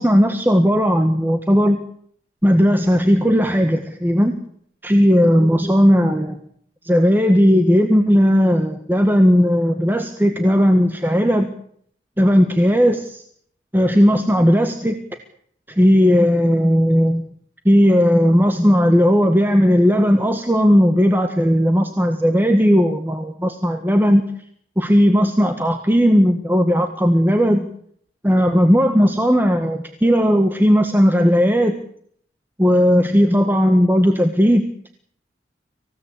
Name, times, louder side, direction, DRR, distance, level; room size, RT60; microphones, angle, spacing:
voice 1, 0.0-1.8 2.4-4.4 4.8-6.4 6.8-11.5 12.2-13.2 13.7-15.0 15.7-17.2 17.6-24.2 24.8-27.7 28.2-31.7 32.6-34.6, equal, 10° right, 6 dB, 1.6 m, -16 dB
26.5 x 17.0 x 8.5 m, 0.65 s
head